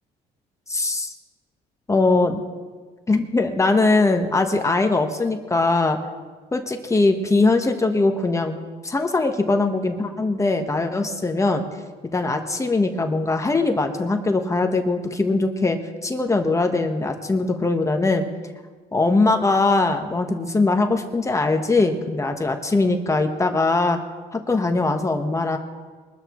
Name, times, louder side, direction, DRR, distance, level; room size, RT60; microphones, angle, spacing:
voice 1, 0.7-1.1 1.9-2.4 3.1-6.0 6.5-8.6 8.8-11.6 12.1-18.2 18.9-24.0 24.3-25.6, left 3 dB, 15° left, 5 dB, 1.2 m, -21 dB
22.5 x 13.0 x 3.1 m, 1.4 s
cardioid pair, 110°, 17 cm